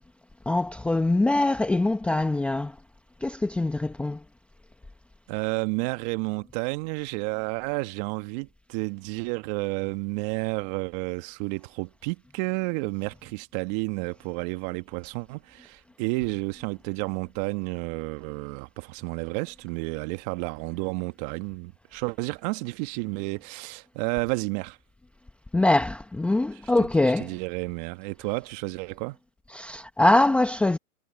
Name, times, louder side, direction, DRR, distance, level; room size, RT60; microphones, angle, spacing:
voice 1, 0.5-2.7 3.2-4.2 25.5-27.3 29.5-30.8, left 2 dB, 5° left, 0.9 m, -23 dB
voice 2, 5.3-24.8 26.5-26.9 27.2-29.2, right 26 dB, 30° right, 1.7 m, -31 dB
hypercardioid pair, 135°, 44 cm